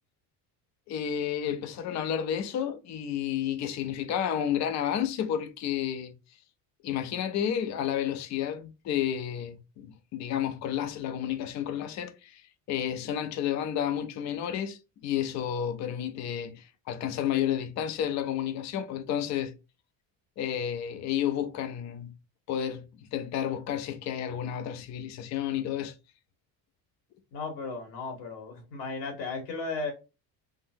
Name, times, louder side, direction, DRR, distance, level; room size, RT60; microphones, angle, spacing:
voice 1, 0.9-6.1 6.8-19.5 20.4-22.1 22.5-22.9 23.1-25.9, left 9 dB, 40° left, 0.4 m, -31 dB
voice 2, 27.3-29.9, left 3 dB, 70° left, 1.3 m, -35 dB
3.8 x 2.0 x 2.6 m
cardioid pair, 145°, 44 cm